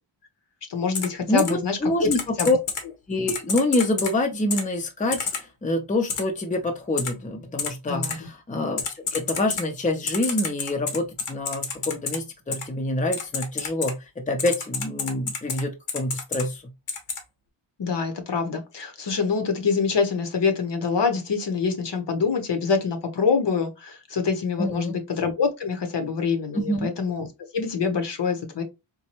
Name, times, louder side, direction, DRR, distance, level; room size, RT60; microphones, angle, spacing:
voice 1, 0.7-2.1 2.4-2.5 7.8-8.3 17.8-27.3 27.5-28.6, left 5 dB, 55° left, 0.8 m, -25 dB
Typing, 0.9-1.1 1.4-1.5 2.1-2.8 3.3-4.1 4.5-4.6 5.1-5.4 6.1-6.2 7.0-7.1 7.6-7.7 8.0-8.1 8.8-9.6 10.1-12.2 12.5-12.6 13.1-13.9 14.4-15.6 15.9-16.4 16.9-17.2, left 5 dB, 85° left, 1.1 m, -28 dB
voice 2, 1.3-2.6 3.1-16.6 24.6-25.0 26.5-26.9, left 2 dB, 15° left, 0.6 m, -26 dB
4.2 x 2.2 x 2.9 m
wide cardioid pair, 120°, 50 cm